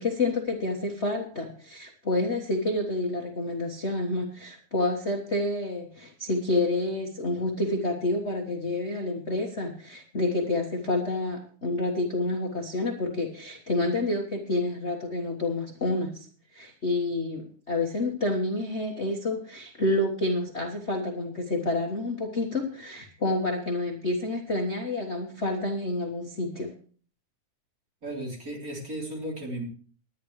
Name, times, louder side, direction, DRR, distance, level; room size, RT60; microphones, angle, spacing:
voice 1, 0.0-26.7, left 2 dB, 45° left, 1 dB, 0.8 m, -29 dB
voice 2, 28.0-29.6, right 1 dB, 25° right, -1 dB, 3.9 m, -35 dB
19.5 x 11.0 x 3.2 m, 0.42 s
omnidirectional pair, 3.6 m